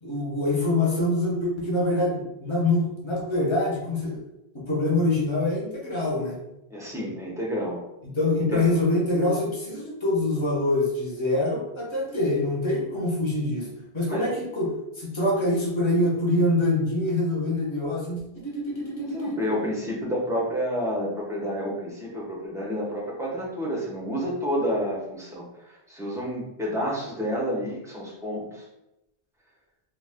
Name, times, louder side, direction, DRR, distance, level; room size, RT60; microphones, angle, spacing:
voice 1, 0.0-4.2 4.5-6.4 8.0-13.7 13.9-19.4, left 2 dB, 30° left, -4 dB, 0.8 m, -25 dB
voice 2, 6.7-7.8 8.4-8.6 14.1-14.3 19.0-28.6, equal, 5° right, -4 dB, 0.6 m, -30 dB
2.3 x 2.3 x 3.4 m, 0.90 s
omnidirectional pair, 1.1 m